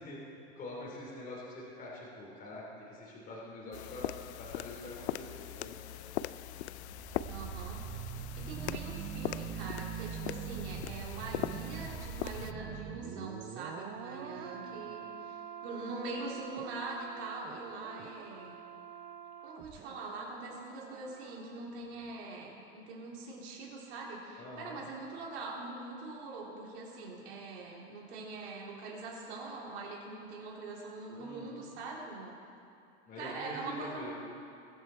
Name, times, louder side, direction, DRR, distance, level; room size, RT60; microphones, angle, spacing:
voice 1, 0.0-4.1 4.4-5.7 14.1-14.9 24.4-24.8 31.2-31.7 33.1-34.1, left 1 dB, 25° left, -4 dB, 3.1 m, -45 dB
sound 1, 3.7-12.5, left 13 dB, 75° left, 0.5 m, -41 dB
sound 2, 6.7-21.7 22.0-22.1, right 9 dB, 25° right, 0.5 m, -44 dB
voice 2, 7.3-7.8 8.4-18.6 19.4-32.3 33.2-34.1, right 3 dB, 70° right, -3 dB, 3.7 m, -43 dB
21.5 x 7.7 x 4.5 m, 2.6 s
supercardioid pair, 130°, 34 cm